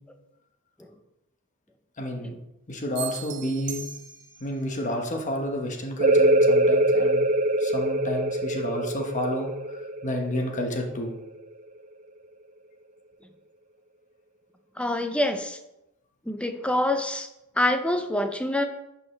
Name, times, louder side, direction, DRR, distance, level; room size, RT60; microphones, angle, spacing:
voice 1, 2.0-2.4 2.7-3.8 4.4-7.3 7.6-11.1, equal, 35° left, 2 dB, 1.3 m, -30 dB
sound 1, 2.9-4.6, right 10 dB, 60° right, 0.9 m, -38 dB
sound 2, 6.0-11.4, right 1 dB, 35° right, 0.6 m, -23 dB
voice 2, 14.8-15.6 16.3-17.3 17.6-18.6, left 1 dB, 5° left, 7 dB, 0.6 m, -25 dB
11.0 x 5.5 x 3.3 m, 0.91 s
head